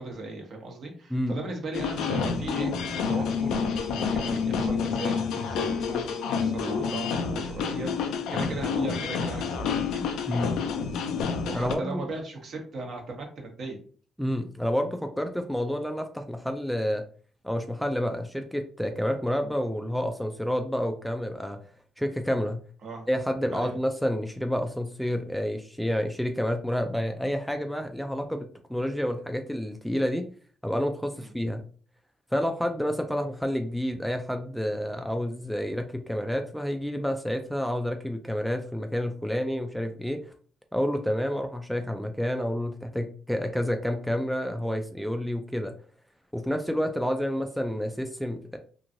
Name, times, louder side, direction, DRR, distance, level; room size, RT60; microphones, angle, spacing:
voice 1, 0.0-2.7 3.1-10.0 11.4-13.8 22.8-23.1 23.5-23.7 31.2-31.3, right 2 dB, 60° right, 1 dB, 1.0 m, -37 dB
sound 1, 1.7-11.8, left 6 dB, 85° left, 0.4 m, -28 dB
voice 2, 11.5-12.1 14.2-17.0 17.4-21.6 22.0-22.6 23.1-30.3 30.6-31.6 32.3-40.2 40.7-45.7 46.3-48.6, equal, ahead, 5 dB, 0.3 m, -29 dB
3.0 x 2.6 x 2.5 m, 0.43 s
cardioid pair, 90°, 0 cm